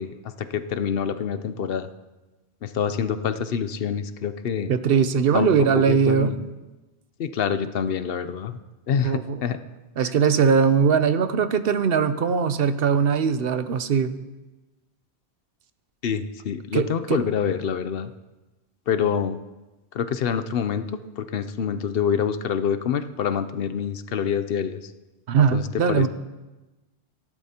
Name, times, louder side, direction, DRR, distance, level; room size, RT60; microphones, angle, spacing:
voice 1, 0.0-1.9 2.6-4.7 5.3-5.5 5.7-6.5 7.2-8.6 8.9-9.6 10.0-10.1 16.0-18.1 18.9-19.4 19.9-20.8 21.2-24.9 25.5-26.1, left 7 dB, 70° left, 11 dB, 0.8 m, -26 dB
voice 2, 4.7-6.3 9.0-9.4 10.0-14.1 16.7-17.2 25.3-26.1, right 6 dB, 65° right, 11 dB, 0.9 m, -20 dB
17.0 x 12.0 x 2.9 m, 1.1 s
omnidirectional pair, 1.0 m